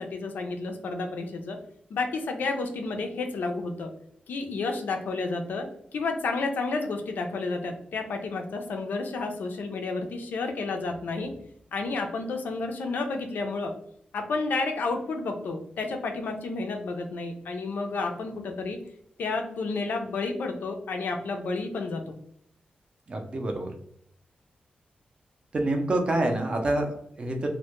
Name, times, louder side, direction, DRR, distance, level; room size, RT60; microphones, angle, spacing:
voice 1, 0.0-1.6 1.9-3.9 4.3-11.3 11.7-13.7 14.1-18.8 19.2-22.1, left 3 dB, 80° left, 4 dB, 0.4 m, -31 dB
voice 2, 23.1-23.7 25.5-27.5, right 1 dB, 35° right, 3 dB, 0.4 m, -27 dB
2.1 x 2.1 x 2.8 m, 0.69 s
wide cardioid pair, 170°, 3 cm